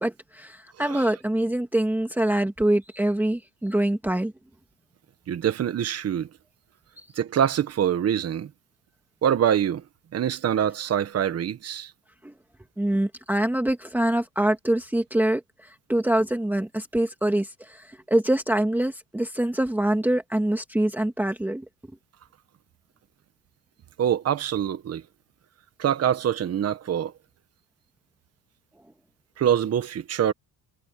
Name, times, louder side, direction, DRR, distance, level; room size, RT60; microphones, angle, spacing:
voice 1, 0.0-4.3 7.0-7.1 12.2-12.3 12.8-21.7, right 1 dB, 5° right, 1.8 m, -25 dB
voice 2, 5.3-6.3 7.1-8.5 9.2-9.8 10.1-11.9 24.0-25.0 25.8-27.1 29.4-30.3, right 9 dB, 35° right, 1.3 m, -24 dB
cardioid pair, 130°, 40 cm